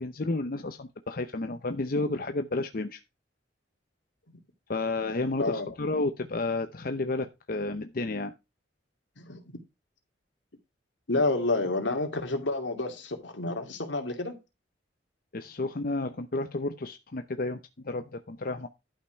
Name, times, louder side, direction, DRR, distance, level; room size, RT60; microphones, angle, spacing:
voice 1, 0.0-3.0 4.7-8.3 15.3-18.7, left 2 dB, 50° left, 0.8 m, -31 dB
voice 2, 11.1-14.3, left 2 dB, 85° left, 2.6 m, -29 dB
11.5 x 5.9 x 4.5 m
head